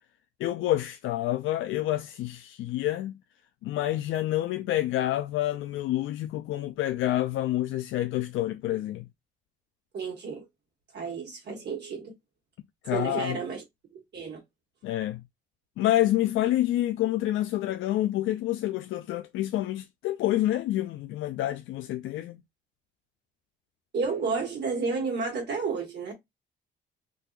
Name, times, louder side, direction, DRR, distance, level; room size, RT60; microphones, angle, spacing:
voice 1, 0.4-3.2 3.6-9.1 12.8-13.4 14.8-15.2 15.8-22.4, left 14 dB, 80° left, 0.4 m, -28 dB
voice 2, 9.9-10.4 10.9-12.1 12.9-13.6 13.9-14.4 23.9-26.1, right 4 dB, 55° right, 1.7 m, -31 dB
3.9 x 2.7 x 2.4 m
cardioid pair, 90°, 20 cm